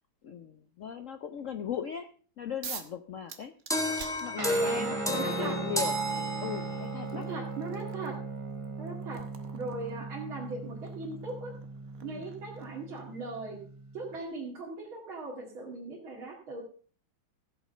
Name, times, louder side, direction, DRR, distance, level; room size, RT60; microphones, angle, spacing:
voice 1, 0.2-2.1 2.4-3.5 4.2-6.0 6.4-7.3 12.0-12.3, left 8 dB, 70° left, 9 dB, 0.7 m, -38 dB
sound 1, 2.6-3.0 3.3-4.8 6.0-6.1 6.6-13.2, right 6 dB, 50° right, 1.5 m, -48 dB
sound 2, 3.7-7.0, equal, ahead, 1.3 m, -31 dB
Guitar, 4.4-14.2, right 3 dB, 20° right, 1.0 m, -39 dB
voice 2, 4.6-5.6 7.1-8.1 8.8-9.2 9.5-11.5 12.0-13.6 13.9-16.6, right 3 dB, 80° right, -4 dB, 3.2 m, -39 dB
15.0 x 8.3 x 5.5 m, 0.43 s
omnidirectional pair, 2.2 m